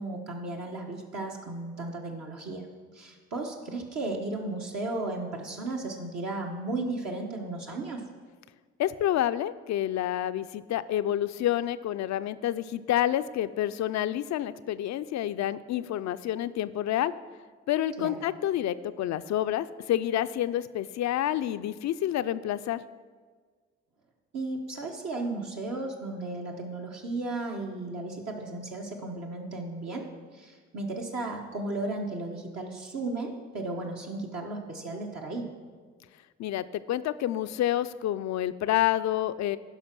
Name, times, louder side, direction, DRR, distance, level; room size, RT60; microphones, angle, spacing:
voice 1, 0.0-2.7 2.9-8.0 18.0-18.2 24.3-30.1 30.3-35.5, right 2 dB, 60° right, -1 dB, 1.3 m, -35 dB
voice 2, 8.8-17.1 17.7-22.8 36.4-39.6, left 12 dB, 65° left, 14 dB, 0.5 m, -28 dB
11.5 x 5.1 x 5.9 m, 1.5 s
supercardioid pair, 50°, 30 cm